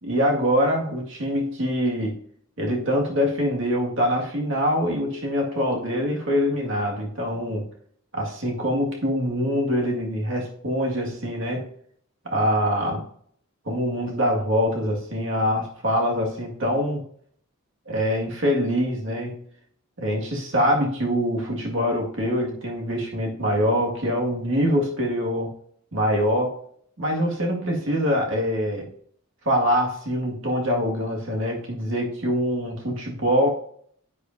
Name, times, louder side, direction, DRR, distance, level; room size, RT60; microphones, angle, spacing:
voice 1, 0.0-2.2 2.6-7.7 8.1-11.6 12.3-13.0 13.7-17.0 17.9-19.4 20.0-25.5 25.9-26.6 27.0-28.9 29.4-33.5, equal, 60° right, 0 dB, 2.0 m, -24 dB
10.0 x 8.3 x 2.7 m, 0.62 s
head